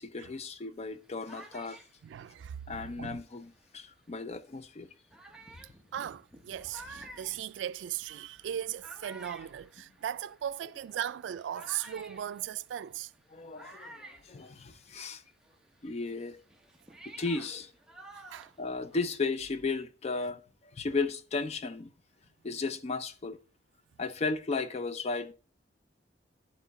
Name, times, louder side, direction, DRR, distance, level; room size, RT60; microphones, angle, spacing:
voice 1, 0.0-1.8 2.7-4.9 13.3-15.2 15.8-16.4 17.2-17.7 18.6-20.4 20.7-21.9 22.4-23.4 24.0-25.3, left 3 dB, 35° left, 0.5 m, -35 dB
sound 1, 0.8-3.8 4.5-4.6 5.1-15.1 15.4-19.2, right 2 dB, 5° right, 0.7 m, -52 dB
voice 2, 2.0-3.2 5.9-13.1 18.1-18.5, right 10 dB, 90° right, 0.3 m, -38 dB
10.5 x 3.6 x 4.0 m
head